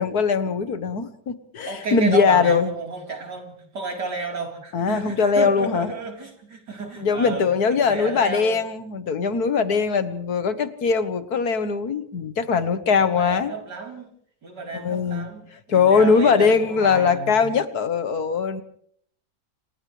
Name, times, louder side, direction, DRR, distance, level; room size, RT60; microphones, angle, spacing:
voice 1, 0.0-2.7 4.7-5.9 7.0-13.5 14.7-18.6, left 5 dB, 65° left, 1.8 m, -21 dB
voice 2, 1.6-8.6 13.0-14.1 14.4-15.4 15.7-17.5, right 3 dB, 80° right, 4.6 m, -32 dB
29.0 x 28.0 x 3.3 m
omnidirectional pair, 1.8 m